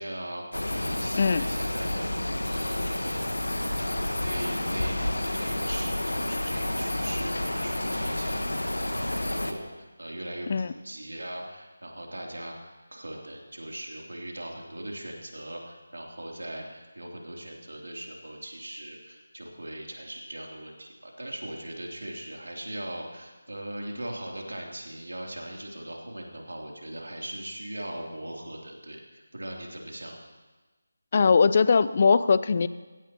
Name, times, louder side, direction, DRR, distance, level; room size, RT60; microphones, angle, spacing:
voice 1, 0.0-3.2 3.8-30.3, right 1 dB, 75° right, -1 dB, 3.2 m, -40 dB
sound 1, 0.5-9.5, left 1 dB, 85° left, 1.4 m, -30 dB
voice 2, 31.1-32.7, left 5 dB, 40° left, 15 dB, 0.5 m, -20 dB
19.5 x 16.5 x 3.0 m, 1.2 s
figure-of-eight pair, 160°, 0 cm